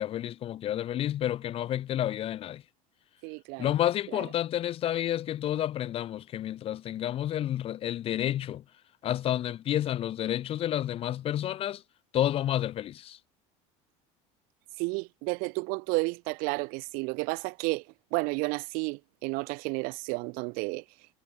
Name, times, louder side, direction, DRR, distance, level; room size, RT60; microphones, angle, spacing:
voice 1, 0.0-2.6 3.6-8.6 9.0-11.8 12.1-13.2, left 12 dB, 40° left, 5.3 m, -30 dB
voice 2, 3.2-3.7 4.1-4.2 14.8-17.8 18.1-20.8, right 30 dB, 65° right, 7.2 m, -32 dB
cardioid pair, 155°, 16 cm